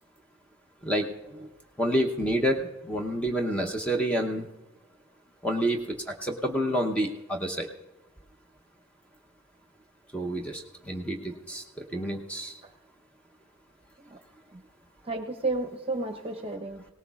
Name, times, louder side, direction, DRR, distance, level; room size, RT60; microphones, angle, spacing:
voice 1, 1.8-4.5 5.4-7.7 10.1-12.6, equal, 5° left, 2 dB, 0.7 m, -28 dB
voice 2, 15.0-16.8, right 2 dB, 30° right, 4 dB, 0.8 m, -32 dB
19.0 x 18.0 x 2.4 m, 1.0 s
head